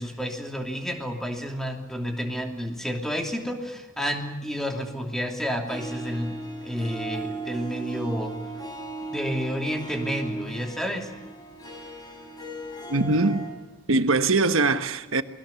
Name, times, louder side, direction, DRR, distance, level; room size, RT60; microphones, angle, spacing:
voice 1, 0.0-8.3 9.1-11.1, equal, ahead, 3.0 m, -30 dB
Harp, 5.6-13.5, right 3 dB, 20° left, 7.5 m, -36 dB
voice 2, 12.9-13.5 13.9-15.2, right 3 dB, 85° right, 1.3 m, -22 dB
28.5 x 21.5 x 7.1 m
head